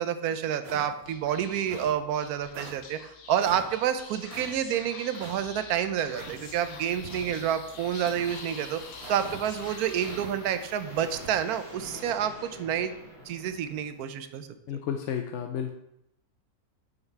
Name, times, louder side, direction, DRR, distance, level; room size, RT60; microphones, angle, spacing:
voice 1, 0.0-8.8 9.1-12.9 13.3-14.5, right 9 dB, 80° right, 11 dB, 1.1 m, -29 dB
sound 1, 0.6-1.1 1.6-2.0 2.5-2.8 3.4-3.7 4.3-4.5 5.1-5.4 6.1-6.4 7.0-7.5 8.1-8.4 9.0-9.4 10.0-10.3 11.0-11.3, right 4 dB, 50° right, 1.0 m, -43 dB
Speech / Whispering, 1.0-10.8, left 4 dB, 85° left, 1.5 m, -46 dB
sound 2, 5.7-14.3, left 1 dB, 40° left, 2.7 m, -48 dB
voice 2, 14.7-15.7, left 8 dB, 65° left, 4 dB, 0.8 m, -32 dB
5.9 x 5.4 x 4.5 m, 0.81 s
omnidirectional pair, 1.6 m